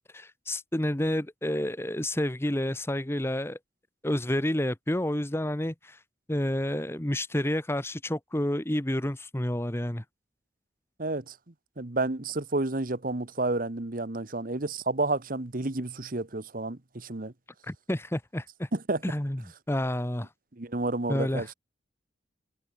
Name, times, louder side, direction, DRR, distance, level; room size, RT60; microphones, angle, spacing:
voice 1, 0.1-3.6 4.0-6.0 6.3-10.0 17.6-18.7 19.0-19.4 19.7-20.3 21.1-21.4, left 1 dB, 15° left, 1.1 m, -29 dB
voice 2, 11.0-11.3 11.8-17.3 18.7-19.0 20.6-21.5, right 2 dB, 50° right, 1.3 m, -30 dB
head